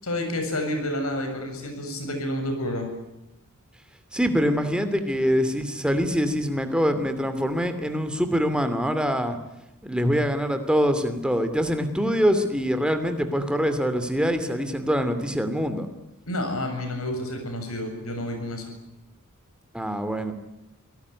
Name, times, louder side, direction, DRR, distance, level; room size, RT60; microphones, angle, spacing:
voice 1, 0.0-2.9 16.3-18.7, left 1 dB, 75° left, 5 dB, 7.5 m, -29 dB
voice 2, 4.1-9.4 9.8-15.9 19.7-20.3, equal, 5° right, 8 dB, 2.7 m, -24 dB
26.0 x 18.5 x 9.7 m, 0.89 s
head